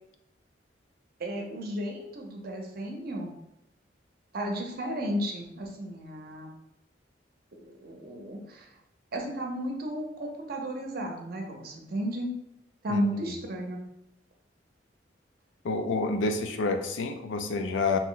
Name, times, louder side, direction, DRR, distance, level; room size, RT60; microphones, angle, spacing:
voice 1, 1.2-3.3 4.3-6.5 7.5-8.7 9.1-12.3 12.8-13.8, equal, 55° right, 2 dB, 0.6 m, -33 dB
voice 2, 15.6-18.0, left 3 dB, 85° left, 6 dB, 0.4 m, -28 dB
2.9 x 2.0 x 3.7 m, 0.82 s
head